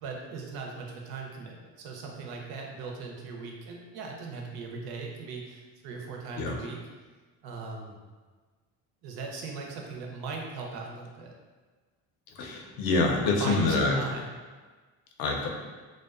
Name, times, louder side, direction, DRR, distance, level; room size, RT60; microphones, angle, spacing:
voice 1, 0.0-6.8 7.4-8.0 9.0-11.3 13.2-14.3, right 4 dB, 75° right, 1 dB, 0.6 m, -39 dB
voice 2, 12.4-14.0 15.2-15.5, left 3 dB, 60° left, 1 dB, 0.5 m, -26 dB
2.5 x 2.1 x 2.3 m, 1.4 s
cardioid pair, 130°, 39 cm